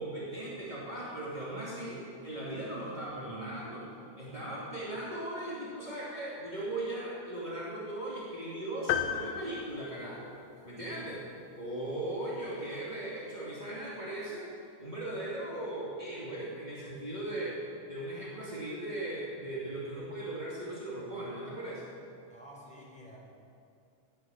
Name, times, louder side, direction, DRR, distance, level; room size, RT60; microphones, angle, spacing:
voice 1, 0.0-3.9 4.2-10.3 10.6-11.2 11.6-14.5 14.8-17.6 17.9-21.9, right 1 dB, 25° right, -7 dB, 1.0 m, -38 dB
voice 2, 4.1-4.5 10.6-11.0 22.3-23.2, equal, ahead, -5 dB, 3.4 m, -53 dB
sound 1, 8.9-10.7, left 9 dB, 85° left, 2.0 m, -34 dB
19.0 x 9.8 x 7.3 m, 2.5 s
omnidirectional pair, 5.4 m